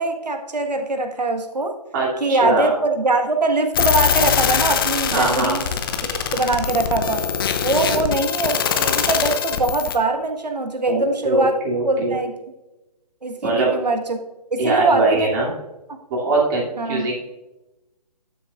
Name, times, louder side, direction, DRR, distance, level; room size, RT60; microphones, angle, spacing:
voice 1, 0.0-1.7 2.2-5.6 6.1-7.2 7.6-11.6 11.8-12.3 13.2-14.2 14.5-15.3 16.8-17.1, right 2 dB, 80° right, 5 dB, 1.5 m, -22 dB
voice 2, 1.9-2.7 5.1-5.6 10.8-12.2 13.4-13.8 14.6-15.5 16.1-17.1, right 3 dB, 30° right, -4 dB, 2.6 m, -22 dB
sound 1, 3.7-10.0, left 8 dB, 35° left, 0.7 m, -22 dB
11.5 x 6.6 x 2.4 m, 1.0 s
figure-of-eight pair, 145°, 21 cm